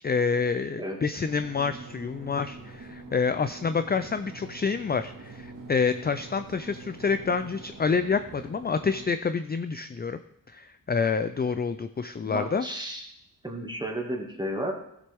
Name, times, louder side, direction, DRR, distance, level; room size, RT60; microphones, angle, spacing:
voice 1, 0.0-10.2 10.5-12.6, left 5 dB, 25° left, 10 dB, 0.4 m, -28 dB
sound 1, 1.2-9.1, right 3 dB, 60° right, 2.0 m, -45 dB
voice 2, 12.2-13.0 13.4-14.7, equal, 10° right, 0 dB, 2.0 m, -32 dB
15.5 x 7.5 x 3.5 m, 0.76 s
wide cardioid pair, 90°, 37 cm